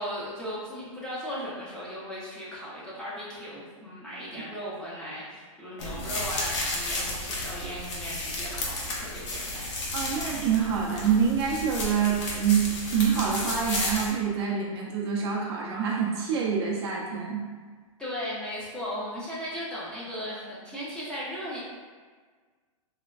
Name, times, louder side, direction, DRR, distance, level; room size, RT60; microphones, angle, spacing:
voice 1, 0.0-9.7 18.0-21.6, equal, 5° left, -9 dB, 0.6 m, -37 dB
sound 1, 5.8-14.1, left 1 dB, 55° left, 0.8 m, -33 dB
voice 2, 9.9-17.4, right 7 dB, 45° right, -2 dB, 0.5 m, -26 dB
3.2 x 2.1 x 2.4 m, 1.5 s
hypercardioid pair, 135°, 18 cm